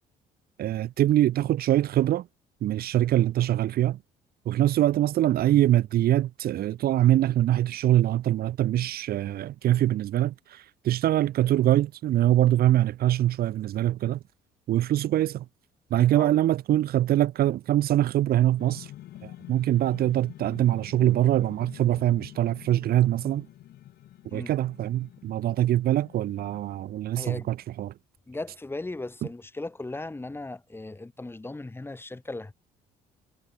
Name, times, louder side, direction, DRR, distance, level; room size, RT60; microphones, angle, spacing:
voice 1, 0.6-2.3 2.6-4.0 4.4-14.2 14.7-15.4 15.9-18.9 19.2-23.5 24.3-27.9, right 13 dB, 65° right, 1.5 m, -23 dB
voice 2, 16.0-16.3 24.3-24.5 27.1-27.5 28.3-32.5, left 2 dB, 15° left, 6.7 m, -37 dB
sound 1, 18.6-27.2, left 13 dB, 70° left, 3.8 m, -47 dB
cardioid pair, 110°, 17 cm